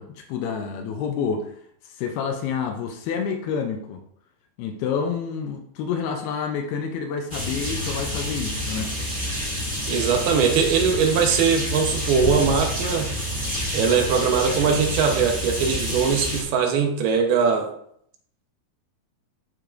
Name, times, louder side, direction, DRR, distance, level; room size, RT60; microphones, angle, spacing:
voice 1, 0.0-1.5 1.8-4.0 4.6-8.9, left 6 dB, 85° left, 3 dB, 2.6 m, -28 dB
sound 1, 7.3-16.4, left 1 dB, 5° right, 0.8 m, -28 dB
voice 2, 9.9-13.1 13.7-17.7, right 6 dB, 85° right, 4 dB, 2.9 m, -21 dB
12.0 x 4.8 x 2.5 m, 0.69 s
omnidirectional pair, 4.4 m